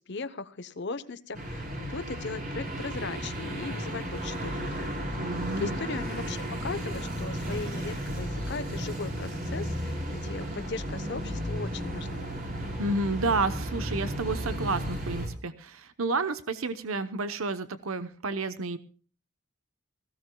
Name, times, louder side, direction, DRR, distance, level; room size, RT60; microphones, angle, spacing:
voice 1, 0.0-5.3 5.6-12.3, left 4 dB, 55° left, 12 dB, 1.0 m, -38 dB
sound 1, 1.3-15.3, equal, 40° right, 4.4 m, -34 dB
voice 2, 5.2-5.8 12.8-18.8, right 3 dB, 80° right, 11 dB, 0.9 m, -30 dB
19.0 x 16.5 x 2.3 m, 0.41 s
head